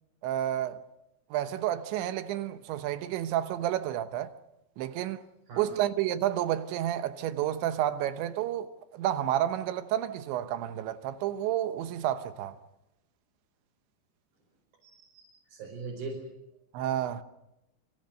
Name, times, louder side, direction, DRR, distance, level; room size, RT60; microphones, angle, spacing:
voice 1, 0.2-0.8 1.3-4.3 4.8-5.2 5.6-12.6 16.7-17.2, right 12 dB, 90° right, 3.4 m, -30 dB
voice 2, 14.8-16.3, right 3 dB, 55° right, 6.4 m, -41 dB
28.5 x 24.5 x 6.5 m
omnidirectional pair, 5.1 m